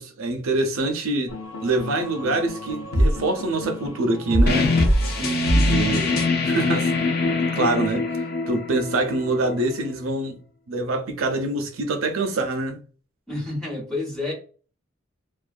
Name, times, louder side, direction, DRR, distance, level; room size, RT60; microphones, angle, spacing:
voice 1, 0.0-1.3 1.6-4.7 5.7-7.1 7.5-8.0 8.5-10.4 10.7-12.8, right 2 dB, 90° right, 0.5 m, -25 dB
sound 1, 1.3-6.3, equal, 85° left, 0.6 m, -24 dB
sound 2, 4.5-9.9, left 4 dB, 50° left, 0.5 m, -24 dB
voice 2, 5.0-5.7 13.3-14.3, equal, 5° left, 0.9 m, -29 dB
2.4 x 2.2 x 2.4 m
head